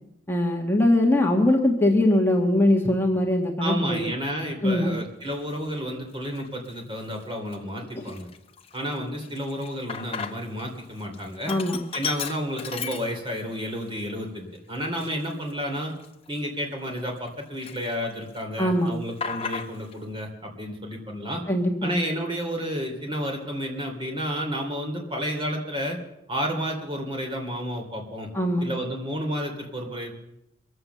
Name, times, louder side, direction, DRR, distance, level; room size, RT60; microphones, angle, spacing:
voice 1, 0.3-4.0 4.6-4.9 7.9-8.0 11.5-11.8 18.6-18.9 21.5-21.9 28.3-28.7, left 1 dB, 15° left, 1 dB, 1.4 m, -21 dB
voice 2, 3.6-8.3 8.7-11.5 11.9-15.9 16.3-21.4 21.8-26.0 26.3-28.3 28.6-30.1, equal, 25° right, 2 dB, 2.9 m, -31 dB
Sink (filling or washing), 5.4-5.5 6.2-6.7 7.1-7.2 7.5-10.7 11.0-13.5 14.0-14.1 14.7-17.3 17.6-18.4 18.6-20.0, left 6 dB, 30° left, 0.9 m, -36 dB
23.5 x 7.9 x 6.9 m, 0.85 s
head